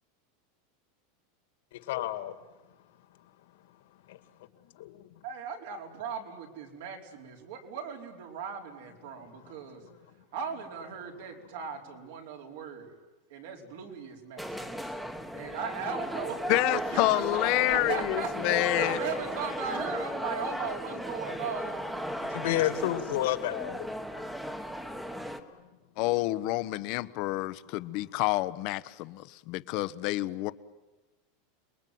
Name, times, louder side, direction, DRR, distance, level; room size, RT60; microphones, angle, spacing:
voice 1, 1.7-2.3 4.1-4.2 4.8-5.0 22.2-23.9, left 13 dB, 70° left, 2.3 m, -30 dB
voice 2, 5.2-9.8 10.3-13.0 13.3-22.4, right 6 dB, 70° right, 4.7 m, -38 dB
sound 1, 14.4-25.4, equal, 5° right, 1.3 m, -36 dB
voice 3, 16.5-19.0 26.0-30.5, left 19 dB, 45° left, 0.9 m, -28 dB
29.5 x 21.5 x 9.3 m
supercardioid pair, 165°, 0 cm